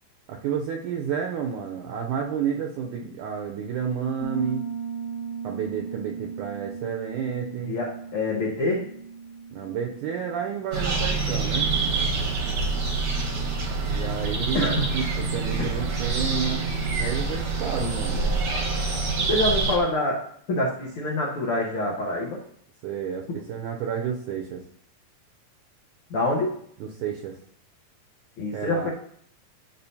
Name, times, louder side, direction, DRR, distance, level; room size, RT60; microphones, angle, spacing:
voice 1, 0.3-4.6 5.4-7.8 9.5-11.8 13.8-16.7 17.0-18.3 22.8-24.6 26.8-27.4 28.5-28.9, right 7 dB, 80° right, 2 dB, 1.9 m, -30 dB
Piano, 4.2-12.7, right 6 dB, 25° left, 1.3 m, -38 dB
voice 2, 7.7-8.8 14.5-14.9 17.8-18.3 19.3-20.2 20.5-22.4 26.1-26.6 28.4-28.9, left 1 dB, 85° left, -3 dB, 1.2 m, -26 dB
sound 1, 10.7-19.8, right 3 dB, 65° right, 1.4 m, -26 dB
11.5 x 5.6 x 2.7 m, 0.67 s
omnidirectional pair, 4.0 m